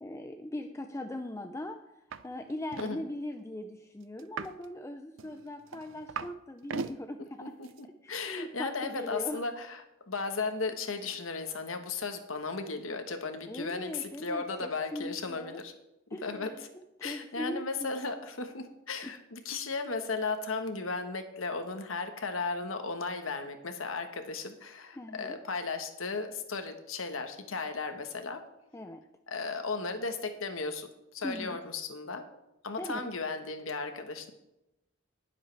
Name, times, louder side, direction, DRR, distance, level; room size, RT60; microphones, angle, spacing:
voice 1, 0.0-7.5 8.0-9.4 13.5-15.6 16.1-16.7 17.0-18.1 19.0-19.1 24.9-25.4 28.7-29.0 31.2-31.6 32.8-33.0, left 1 dB, 15° left, 7 dB, 0.5 m, -40 dB
sound 1, 2.1-2.2 2.5-2.9 4.2-4.7 5.2-6.4 6.6-7.0 7.6-7.8, right 5 dB, 70° right, 0.5 m, -39 dB
voice 2, 8.1-15.7 16.1-16.5 17.0-28.4 29.3-32.2 32.6-34.3, left 4 dB, 85° left, 7 dB, 1.4 m, -35 dB
19.5 x 7.5 x 3.4 m, 0.90 s
head